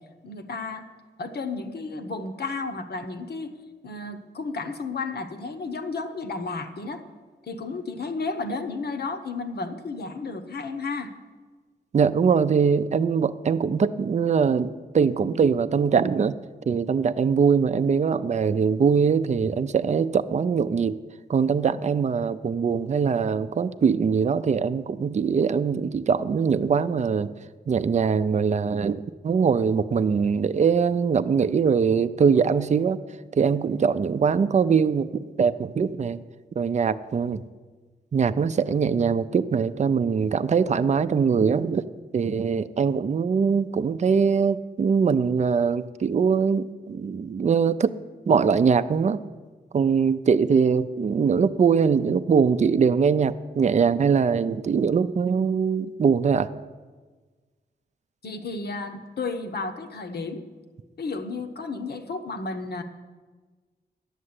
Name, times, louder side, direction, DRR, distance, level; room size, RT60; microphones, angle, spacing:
voice 1, 0.2-0.8 1.2-3.5 3.8-7.0 7.5-11.1 58.2-60.4 61.0-62.8, left 3 dB, 60° left, 7 dB, 1.1 m, -32 dB
voice 2, 11.9-16.4 16.7-21.0 21.3-27.3 27.7-33.0 33.3-36.2 36.6-37.4 38.1-41.8 42.1-47.9 48.3-49.2 49.7-56.5, right 6 dB, 40° right, 12 dB, 0.4 m, -22 dB
11.0 x 7.6 x 9.7 m, 1.4 s
wide cardioid pair, 155°, 18 cm